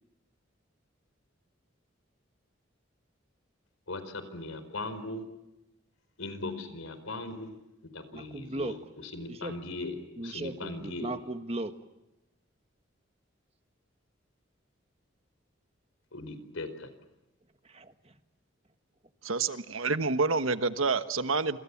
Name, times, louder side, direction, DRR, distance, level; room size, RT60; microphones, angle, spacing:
voice 1, 3.9-5.2 6.2-7.5 7.9-8.7 9.0-11.1 16.1-16.9, left 2 dB, 90° left, 11 dB, 4.6 m, -39 dB
voice 2, 8.1-8.8 9.3-9.5 10.2-11.7 17.6-18.1, right 1 dB, 30° right, 9 dB, 1.4 m, -37 dB
voice 3, 19.2-21.6, right 4 dB, 85° right, 11 dB, 1.3 m, -28 dB
27.5 x 27.0 x 7.2 m, 0.95 s
head